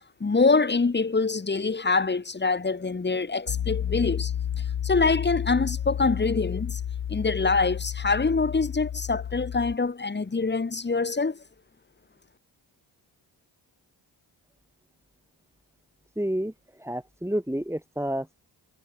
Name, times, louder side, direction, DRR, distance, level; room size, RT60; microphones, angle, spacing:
voice 1, 0.2-6.8 7.1-11.4, left 4 dB, 20° left, 1.1 m, -25 dB
Piano, 3.5-9.8, left 9 dB, 65° left, 1.8 m, -31 dB
voice 2, 16.2-16.5 16.8-18.3, equal, 5° right, 4.5 m, -29 dB
cardioid pair, 50°, 49 cm